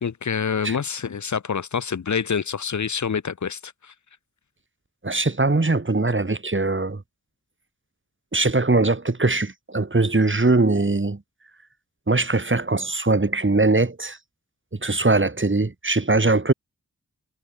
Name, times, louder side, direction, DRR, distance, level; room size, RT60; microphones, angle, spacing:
voice 1, 0.0-3.9, left 6 dB, 60° left, 1.1 m, -27 dB
voice 2, 5.0-7.0 8.3-11.2 12.1-14.2 14.7-16.5, right 3 dB, 35° right, 4.6 m, -21 dB
cardioid pair, 40°, 32 cm